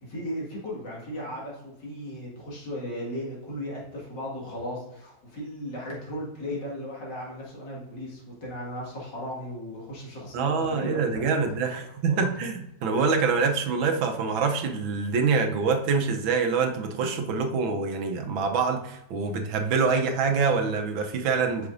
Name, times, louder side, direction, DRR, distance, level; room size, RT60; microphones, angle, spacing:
voice 1, 0.0-12.4, equal, 60° left, -4 dB, 2.6 m, -36 dB
voice 2, 10.3-21.7, right 5 dB, 80° right, 4 dB, 1.6 m, -25 dB
8.1 x 5.9 x 2.6 m, 0.88 s
omnidirectional pair, 2.1 m